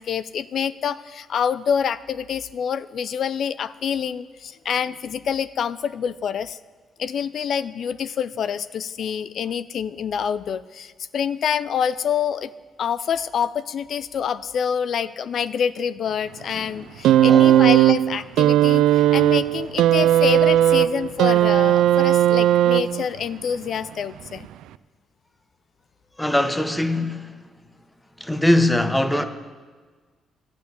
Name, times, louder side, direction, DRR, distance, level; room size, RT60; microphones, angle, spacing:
voice 1, 0.0-6.6 7.0-12.5 12.8-24.5, left 7 dB, 60° left, 16 dB, 0.4 m, -26 dB
sound 1, 17.0-23.2 24.3-24.4, right 12 dB, 90° right, 0.3 m, -16 dB
voice 2, 17.3-17.6 26.2-27.3 28.2-29.2, left 1 dB, 5° left, 9 dB, 0.9 m, -21 dB
11.5 x 8.4 x 8.5 m, 1.5 s
cardioid pair, 90°, 0 cm